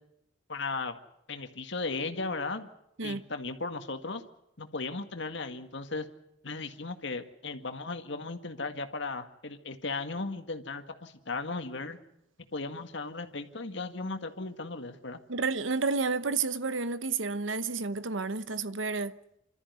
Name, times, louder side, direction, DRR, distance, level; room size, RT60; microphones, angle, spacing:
voice 1, 0.5-1.0 1.3-2.7 3.0-4.2 4.6-6.1 6.4-12.0 12.5-15.2, left 3 dB, 65° left, 1.9 m, -36 dB
voice 2, 15.3-19.2, right 4 dB, 80° right, 1.0 m, -31 dB
27.0 x 13.5 x 9.5 m
head